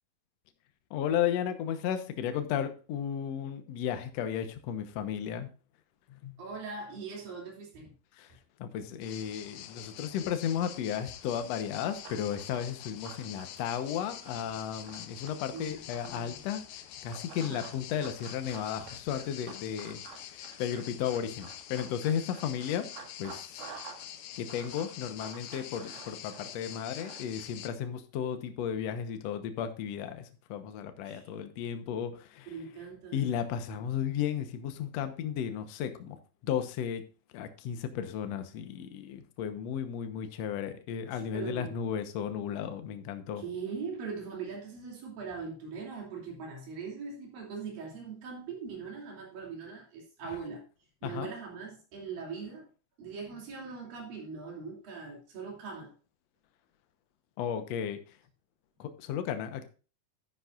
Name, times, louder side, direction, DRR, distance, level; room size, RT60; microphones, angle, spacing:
voice 1, 0.9-5.5 6.1-6.4 8.2-8.3 8.6-16.6 17.0-22.9 23.2-23.7 24.4-32.5 33.1-36.2 36.4-37.0 37.3-43.4 51.0-51.3 57.4-58.0 58.8-59.6, left 9 dB, 70° left, 9 dB, 1.6 m, -34 dB
voice 2, 6.4-7.9 15.5-16.5 17.3-17.7 31.0-31.3 32.5-33.4 41.1-41.8 43.4-50.6 51.0-52.7 53.0-55.9, right 5 dB, 65° right, 0 dB, 4.5 m, -41 dB
sound 1, 9.0-27.7, left 11 dB, 85° left, 1.7 m, -46 dB
Run, 12.0-16.3 17.1-24.1 24.3-27.5, right 6 dB, 90° right, 3.8 m, -50 dB
11.0 x 10.0 x 2.5 m, 0.34 s
omnidirectional pair, 4.3 m